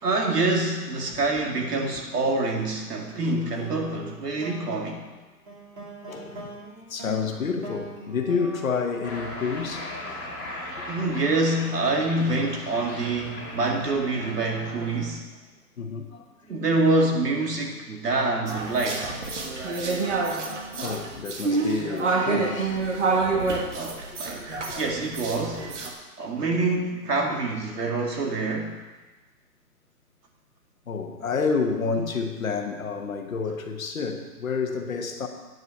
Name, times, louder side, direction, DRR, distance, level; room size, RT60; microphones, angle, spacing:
voice 1, 0.0-5.0 10.9-15.3 16.5-19.1 23.7-25.7 26.2-28.8, right 2 dB, 70° right, 1 dB, 2.2 m, -26 dB
sound 1, 3.6-10.0, right 2 dB, 30° right, 2.1 m, -42 dB
voice 2, 6.1-6.6 6.9-10.5 15.8-16.3 19.3-19.5 19.9-20.4 20.8-22.9 30.9-35.3, left 5 dB, 55° left, 5 dB, 1.3 m, -29 dB
Cheering, 9.0-14.9, left 1 dB, 5° right, 2.7 m, -38 dB
sound 2, 18.5-25.9, right 4 dB, 45° right, 1.5 m, -27 dB
9.0 x 5.6 x 7.6 m, 1.2 s
hypercardioid pair, 175°, 48 cm